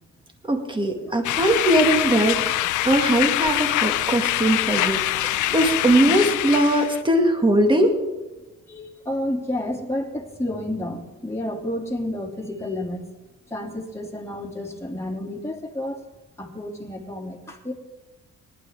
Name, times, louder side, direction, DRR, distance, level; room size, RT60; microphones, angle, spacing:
voice 1, 0.5-8.0, right 1 dB, 15° right, 3 dB, 2.1 m, -20 dB
sound 1, 1.2-7.0, left 15 dB, 80° left, 0.5 m, -24 dB
voice 2, 8.7-13.0 13.5-16.0 16.4-17.7, left 1 dB, 10° left, -1 dB, 2.8 m, -30 dB
18.5 x 11.5 x 3.7 m, 1.1 s
cardioid pair, 90°, 30 cm